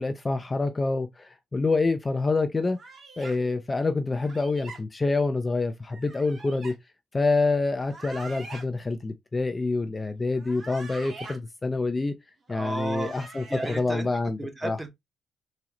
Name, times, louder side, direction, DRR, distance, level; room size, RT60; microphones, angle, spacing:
voice 1, 0.0-2.8 3.2-6.7 7.1-12.2 12.5-14.8, left 3 dB, 25° left, 0.3 m, -27 dB
sound 1, 2.8-3.4 4.2-4.8 5.9-6.7 7.8-8.6 10.3-11.4 12.5-13.8, right 3 dB, 45° right, 1.2 m, -44 dB
voice 2, 12.5-13.1 13.5-14.1 14.4-15.0, right 2 dB, 15° right, 0.8 m, -33 dB
3.7 x 2.0 x 2.8 m
cardioid pair, 90°, 0 cm